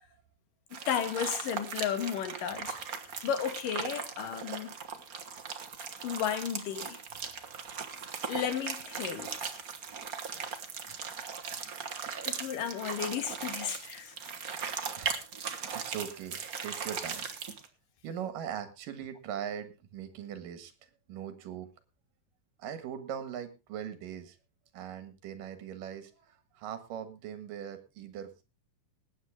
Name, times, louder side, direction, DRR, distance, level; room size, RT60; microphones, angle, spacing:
voice 1, 0.7-2.8 3.2-4.7 6.0-7.0 8.3-9.3 12.3-14.1, left 8 dB, 85° left, 3.2 m, -33 dB
sound 1, 0.7-17.7, right 6 dB, 65° right, 0.8 m, -39 dB
voice 2, 10.0-10.8 11.2-11.4 14.9-15.1 15.4-17.3 18.0-20.7 21.1-21.7 22.6-24.4 24.7-28.4, right 9 dB, 85° right, 3.2 m, -41 dB
20.0 x 9.1 x 3.5 m
omnidirectional pair, 3.7 m